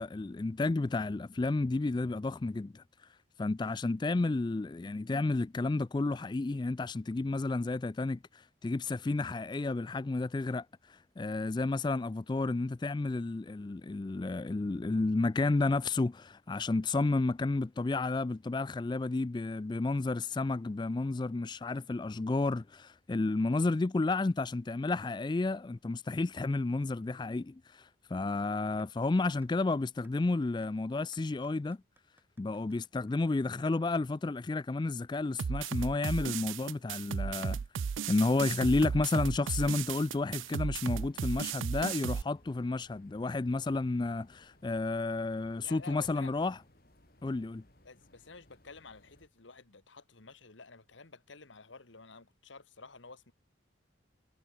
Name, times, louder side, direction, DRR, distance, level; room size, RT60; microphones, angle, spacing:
voice 1, 0.0-3.1 3.4-31.8 32.4-37.6 38.1-46.6 47.2-47.6, left 3 dB, 25° left, 0.3 m, -31 dB
sound 1, 28.8-28.9 29.4-29.5 30.0-30.1 30.6-30.7 31.1-34.1, right 2 dB, 10° right, 5.9 m, -68 dB
sound 2, 35.4-42.2, right 6 dB, 80° right, 0.4 m, -35 dB
sound 3, 38.1-49.3, left 1 dB, 50° left, 4.0 m, -64 dB
voice 2, 45.6-46.3 47.8-53.3, left 3 dB, 75° left, 1.8 m, -51 dB
head